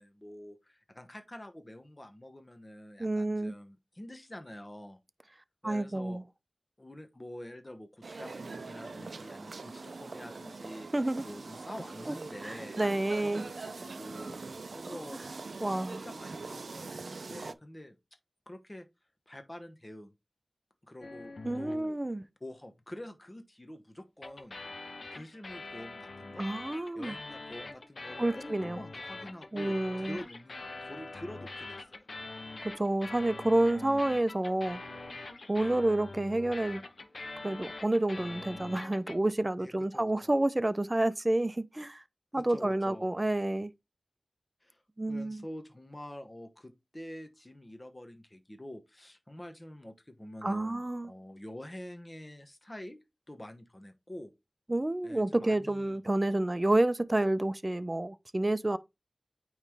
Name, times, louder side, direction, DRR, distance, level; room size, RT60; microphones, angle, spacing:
voice 1, 0.0-5.0 5.6-6.2 6.8-10.9 11.2-12.8 13.2-14.4 14.7-15.2 15.7-18.0 18.5-18.9 19.3-20.1 20.8-22.0 22.4-24.6 25.1-26.5 26.9-32.1 39.6-40.3 42.3-43.1 44.6-44.8 45.1-54.3 55.0-56.0, left 1 dB, 30° left, 1.0 m, -47 dB
voice 2, 3.0-3.5 5.6-6.2 10.9-11.2 12.1-12.2 12.4-13.4 15.6-16.0 21.4-22.2 26.4-27.2 28.2-28.8 29.5-30.2 32.6-34.8 35.5-36.8 37.4-42.0 42.3-43.7 45.0-45.4 50.4-51.1 54.7-58.8, right 1 dB, 30° right, 0.6 m, -29 dB
Footsteps in the street, 8.0-17.5, right 3 dB, 85° right, 0.5 m, -43 dB
sound 1, 21.0-21.9 24.2-39.2, left 3 dB, 80° left, 0.8 m, -44 dB
8.9 x 3.2 x 3.4 m
wide cardioid pair, 50°, 0 cm